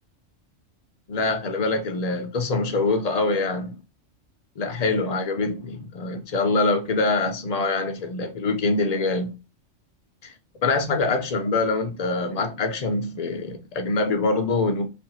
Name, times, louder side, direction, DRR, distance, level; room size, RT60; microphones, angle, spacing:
voice 1, 1.1-3.7 4.6-9.4 10.2-10.3 10.6-14.9, left 3 dB, 60° left, 0.4 m, -24 dB
2.7 x 2.5 x 2.9 m
omnidirectional pair, 1.3 m